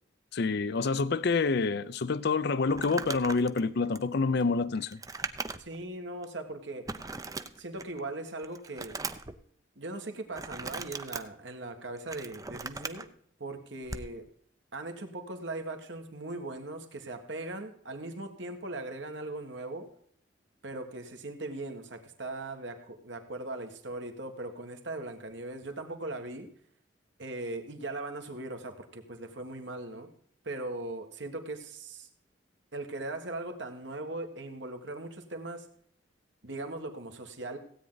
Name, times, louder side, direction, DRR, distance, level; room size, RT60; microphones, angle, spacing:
voice 1, 0.3-5.0, left 4 dB, 60° left, 0.5 m, -27 dB
Crumpling crinkling, 2.7-5.8 6.2-6.3 6.9-8.0 8.4-9.3 10.3-11.2 11.8-13.0 13.8-14.1, right 4 dB, 20° right, 0.6 m, -39 dB
voice 2, 5.6-6.9 7.6-9.0 9.7-13.1 13.4-14.2 14.7-19.9 20.6-26.5 27.2-30.1 30.4-32.1 32.7-35.7 36.4-37.6, right 2 dB, 65° right, 1.7 m, -39 dB
16.5 x 8.9 x 4.0 m
head